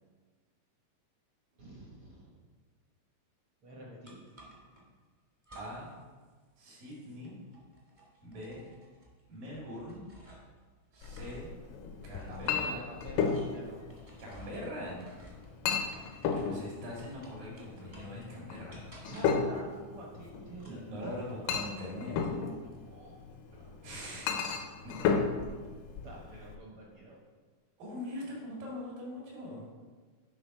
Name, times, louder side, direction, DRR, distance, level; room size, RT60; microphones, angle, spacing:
voice 1, 1.5-2.4 3.6-4.2 4.5-4.9 12.3-13.9 16.1-16.8 19.0-21.3 22.6-23.2 23.5-23.9 26.0-27.2, right 1 dB, 65° right, -3 dB, 1.3 m, -48 dB
sound 1, 4.0-4.8 5.4-6.0 6.3-10.6 10.9-16.6 17.0-18.2 18.7-19.5 20.5-21.9 22.2-22.8, right 1 dB, 30° right, 0.6 m, -55 dB
voice 2, 5.6-5.9 6.6-7.4 8.2-8.6 9.3-10.0 10.9-11.5 12.0-12.7 14.2-15.0 16.0-16.1 16.4-18.9 20.6-22.4 23.8-24.4 24.8-25.1 27.8-29.6, left 1 dB, 85° right, -4 dB, 3.9 m, -42 dB
Chink clink, 11.0-26.5, left 6 dB, 80° left, 2.3 m, -35 dB
9.5 x 3.9 x 5.4 m, 1.4 s
omnidirectional pair, 3.8 m